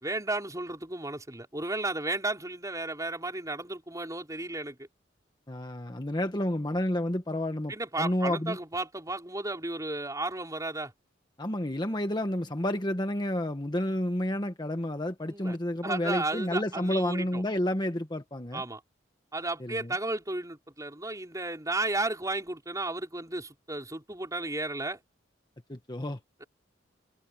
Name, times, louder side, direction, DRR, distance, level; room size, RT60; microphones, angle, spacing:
voice 1, 0.0-4.8 7.7-10.9 15.3-15.6 15.8-17.4 18.5-18.8 19.3-25.0, right 2 dB, 20° right, 4.6 m, -33 dB
voice 2, 5.5-8.6 11.4-18.6 19.6-19.9 25.7-26.2, left 1 dB, 25° left, 1.3 m, -30 dB
open air
head